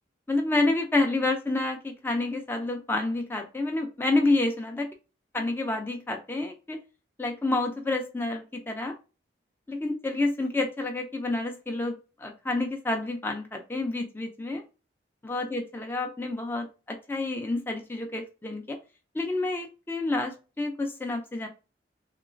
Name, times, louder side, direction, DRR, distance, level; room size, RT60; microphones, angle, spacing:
voice 1, 0.3-4.9 5.3-6.8 7.2-8.9 9.7-14.6 15.2-18.8 19.1-21.5, left 2 dB, 10° left, 3 dB, 0.3 m, -29 dB
3.0 x 2.9 x 2.5 m, 0.31 s
head